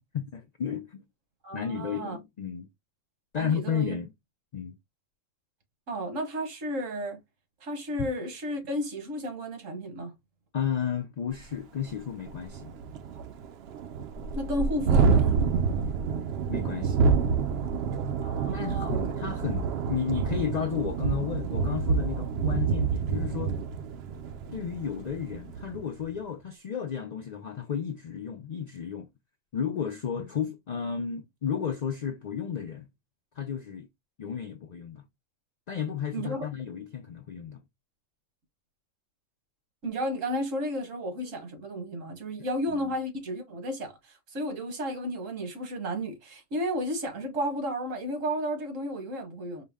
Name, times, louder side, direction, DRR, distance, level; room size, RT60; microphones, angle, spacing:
voice 1, 0.1-1.0 1.5-2.7 3.3-4.1 4.5-4.8 10.5-12.7 16.5-17.0 18.5-23.5 24.5-29.1 29.5-32.9 33.4-33.9 34.2-35.0 35.7-37.6 42.7-42.8, left 8 dB, 90° left, 0.3 m, -33 dB
voice 2, 1.4-2.2 3.4-4.0 5.9-7.2 7.6-10.1 14.3-15.5 18.2-19.0 36.1-36.5 39.8-49.6, equal, 80° right, 1.6 m, -33 dB
Thunderstorm, 11.4-11.5 11.9-12.0 12.3-25.9, right 5 dB, 65° right, 0.7 m, -28 dB
4.7 x 2.1 x 3.5 m
omnidirectional pair, 1.3 m